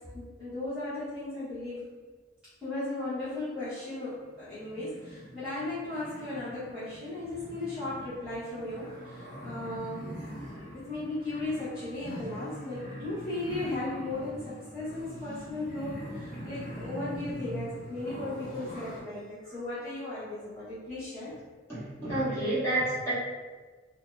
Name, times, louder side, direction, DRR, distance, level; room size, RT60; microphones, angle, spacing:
voice 1, 0.1-1.8 2.6-21.3, left 2 dB, 5° right, -16 dB, 1.0 m, -36 dB
sound 1, 4.4-19.0, equal, 45° left, 0.9 m, -43 dB
voice 2, 21.7-23.1, right 1 dB, 15° left, -13 dB, 1.4 m, -29 dB
2.7 x 2.2 x 3.2 m, 1.4 s
head